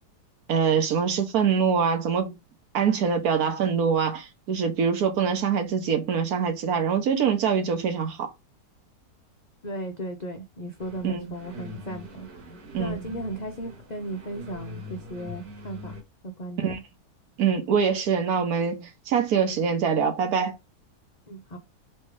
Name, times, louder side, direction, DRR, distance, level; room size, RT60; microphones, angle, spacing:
voice 1, 0.5-2.4 2.7-8.3 11.0-11.3 12.7-13.1 16.6-16.8 17.4-20.6, right 6 dB, 65° right, 1.3 m, -24 dB
voice 2, 9.6-16.8 21.3-21.6, right 1 dB, 75° left, 0.4 m, -36 dB
sound 1, 10.8-16.0, left 1 dB, 90° right, 1.7 m, -42 dB
3.3 x 3.2 x 4.6 m
omnidirectional pair, 1.7 m